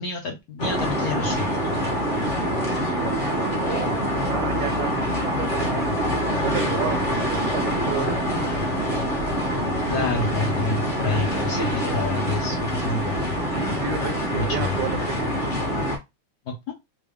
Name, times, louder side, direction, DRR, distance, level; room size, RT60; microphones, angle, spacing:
voice 1, 0.0-1.6 9.9-13.3 14.3-14.8 16.5-16.7, left 3 dB, 75° left, 0.8 m, -28 dB
sound 1, 0.6-16.0, equal, 35° left, 0.8 m, -25 dB
voice 2, 2.8-8.8 13.5-15.3, right 8 dB, 75° right, 1.1 m, -33 dB
3.6 x 2.2 x 3.4 m
omnidirectional pair, 2.3 m